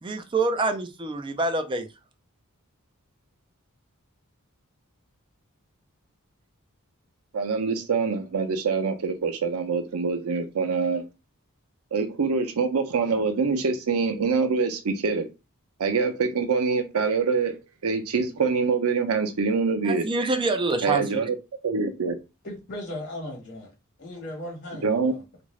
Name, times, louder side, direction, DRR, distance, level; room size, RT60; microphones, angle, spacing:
voice 1, 0.0-1.9 19.8-21.2, right 3 dB, 20° right, 0.4 m, -26 dB
voice 2, 7.3-11.0 11.9-15.3 15.8-17.5 17.8-20.1 20.8-21.3 21.6-22.1 24.8-25.1, right 4 dB, 80° right, 0.5 m, -25 dB
voice 3, 22.4-23.7 24.0-25.2, left 1 dB, 40° left, 1.4 m, -37 dB
3.6 x 2.5 x 3.1 m
head